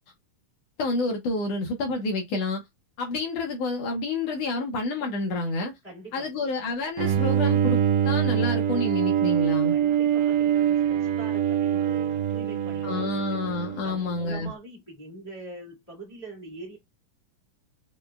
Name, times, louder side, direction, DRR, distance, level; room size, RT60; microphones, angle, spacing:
voice 1, 0.8-2.6 3.0-5.7 6.1-7.8 8.0-9.7 12.8-14.5, left 3 dB, 75° left, 1.4 m, -29 dB
voice 2, 5.8-6.3 9.7-13.4 13.8-16.8, right 2 dB, 55° left, 0.4 m, -43 dB
Bowed string instrument, 7.0-14.2, right 9 dB, 80° right, 2.1 m, -24 dB
6.3 x 2.2 x 2.3 m
omnidirectional pair, 3.8 m